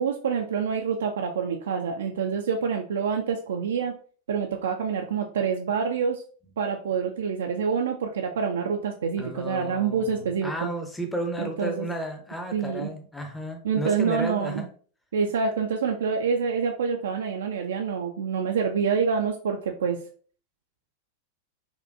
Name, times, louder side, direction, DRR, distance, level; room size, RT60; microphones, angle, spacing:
voice 1, 0.0-4.0 4.3-6.2 6.6-10.5 11.4-11.9 12.5-12.9 13.6-14.6 15.1-20.0, right 6 dB, 65° right, 3 dB, 0.3 m, -27 dB
voice 2, 9.2-14.7, right 1 dB, 5° left, 4 dB, 0.7 m, -33 dB
4.3 x 2.2 x 2.5 m, 0.43 s
figure-of-eight pair, 90°, 0 cm